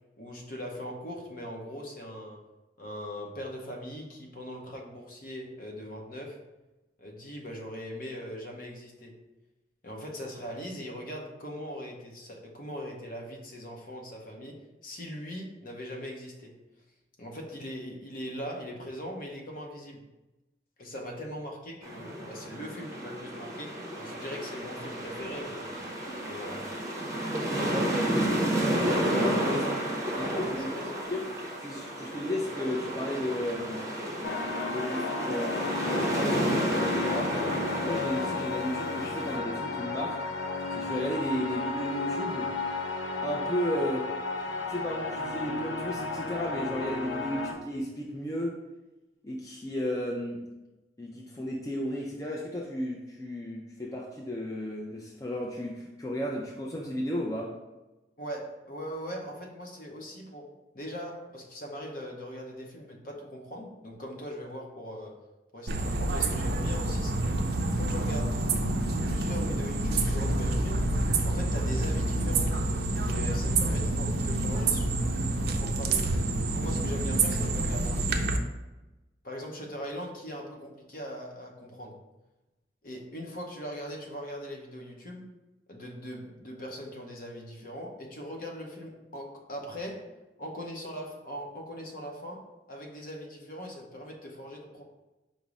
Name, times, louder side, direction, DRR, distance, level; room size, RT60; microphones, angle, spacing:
voice 1, 0.2-2.4 2.8-6.4 7.0-9.1 9.8-16.5 17.2-20.0 20.8-25.8 26.3-26.7 30.5-30.9 58.2-65.2 65.5-67.4 67.7-68.6 69.0-70.9 71.2-72.6 73.0-74.9 75.4-76.1 76.4-78.3 79.2-81.9 82.8-85.3 85.7-90.1 90.4-94.8, equal, 50° left, 0 dB, 0.8 m, -40 dB
sound 1, 21.8-39.4, right 1 dB, 15° right, 0.7 m, -31 dB
voice 2, 27.5-29.9 30.1-30.7 31.1-31.3 31.6-33.8 34.6-37.4 37.8-40.2 40.7-42.5 43.2-44.1 44.7-48.6 49.2-50.4 51.0-57.5, equal, 20° left, -2 dB, 0.4 m, -34 dB
sound 2, 34.2-47.5, left 3 dB, 90° left, 0.5 m, -33 dB
sound 3, 65.7-78.4, right 2 dB, 60° right, 0.4 m, -28 dB
5.3 x 2.0 x 4.7 m, 1.1 s
head